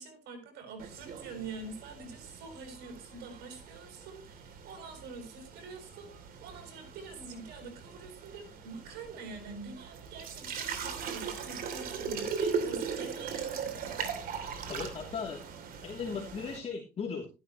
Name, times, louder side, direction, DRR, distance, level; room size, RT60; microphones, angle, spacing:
voice 1, 0.0-13.6, right 4 dB, 80° right, 4 dB, 6.5 m, -46 dB
sound 1, 0.8-16.6, right 6 dB, 60° right, 3.0 m, -39 dB
voice 2, 14.7-15.4 15.8-17.3, left 5 dB, 40° left, 0 dB, 2.9 m, -37 dB
14.0 x 11.5 x 3.0 m, 0.28 s
cardioid pair, 110°, 17 cm